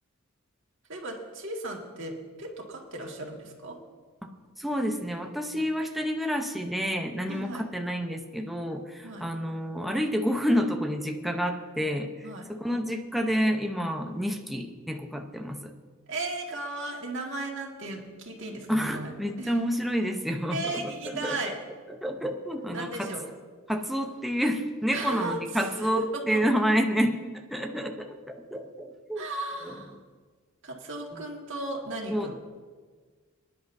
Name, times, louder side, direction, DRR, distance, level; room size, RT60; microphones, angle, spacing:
voice 1, 0.9-3.8 7.3-7.6 9.0-9.2 12.2-12.5 16.1-19.1 19.4-19.5 20.5-21.6 22.7-23.3 24.9-26.4 29.2-29.9 30.6-32.3, right 2 dB, 65° right, 0 dB, 1.9 m, -35 dB
voice 2, 4.6-15.7 18.7-21.5 22.0-23.1 23.7-29.3 29.6-29.8 32.1-32.3, equal, ahead, 2 dB, 0.8 m, -29 dB
23.0 x 10.5 x 2.7 m, 1.5 s
head